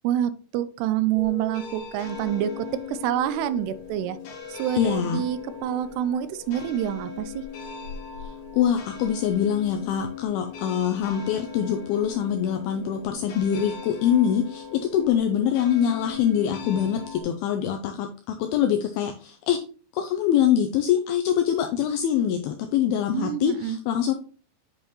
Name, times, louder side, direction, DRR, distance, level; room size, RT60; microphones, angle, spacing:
voice 1, 0.0-4.2 4.5-7.4 23.1-23.8, right 11 dB, 85° right, 13 dB, 2.7 m, -27 dB
sound 1, 1.1-17.2, left 6 dB, 60° left, 2.6 m, -39 dB
voice 2, 4.7-5.2 8.5-19.6 19.9-24.1, left 9 dB, 80° left, 5 dB, 2.5 m, -24 dB
8.3 x 5.4 x 3.0 m, 0.39 s
omnidirectional pair, 4.6 m